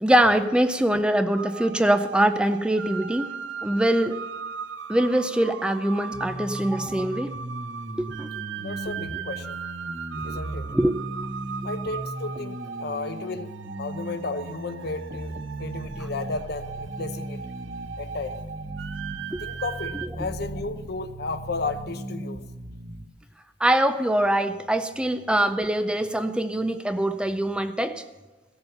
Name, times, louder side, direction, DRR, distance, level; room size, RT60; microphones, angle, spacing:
voice 1, 0.0-3.3 3.6-4.2 4.9-7.3 8.0-8.3 10.3-10.4 10.7-11.0 19.3-19.4 23.6-28.0, right 1 dB, 5° right, 9 dB, 0.5 m, -23 dB
sound 1, 1.4-20.1, right 6 dB, 80° right, 0.6 m, -38 dB
sound 2, 6.1-23.1, right 1 dB, 40° right, 0.9 m, -37 dB
voice 2, 8.6-9.6 10.2-10.7 11.6-13.5 13.8-17.4 18.0-18.4 19.4-22.4, left 3 dB, 60° left, 10 dB, 0.8 m, -33 dB
16.0 x 7.1 x 6.8 m, 1.2 s
head